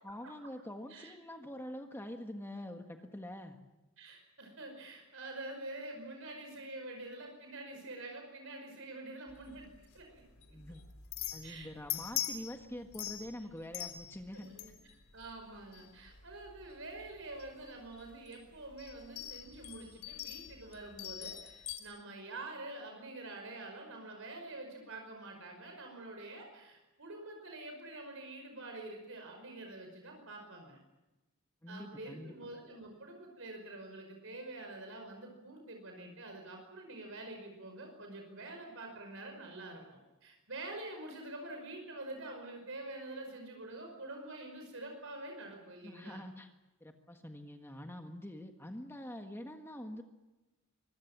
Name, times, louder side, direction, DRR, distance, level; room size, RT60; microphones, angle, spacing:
voice 1, 0.0-3.6 10.5-10.8 11.3-14.5 31.6-32.3 45.8-46.5 46.8-50.0, left 1 dB, 10° left, 4 dB, 1.6 m, -45 dB
voice 2, 4.0-9.7 9.9-10.2 10.5-10.6 11.4-11.7 14.3-14.7 15.1-30.8 31.7-46.2, right 2 dB, 65° right, 3 dB, 5.4 m, -46 dB
sound 1, 9.3-21.8, left 11 dB, 80° left, 3.5 m, -44 dB
25.0 x 22.0 x 7.4 m, 1.0 s
head